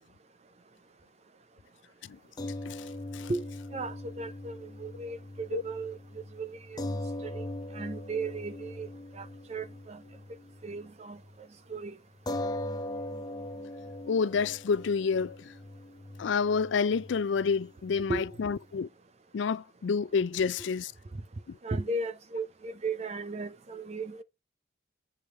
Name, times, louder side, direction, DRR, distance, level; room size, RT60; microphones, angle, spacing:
sound 1, 2.4-10.9 11.2-11.4 12.3-18.8, left 1 dB, 20° left, 0.5 m, -40 dB
voice 1, 2.7-3.3 5.5-5.6 14.1-15.5 16.2-18.9 19.3-20.9 21.5-21.6, left 5 dB, 75° left, 0.4 m, -29 dB
voice 2, 3.7-7.5 7.7-10.0 10.6-11.2 11.7-12.0 18.1-18.3 21.6-24.2, right 3 dB, 35° right, 0.5 m, -36 dB
7.1 x 4.8 x 3.2 m
head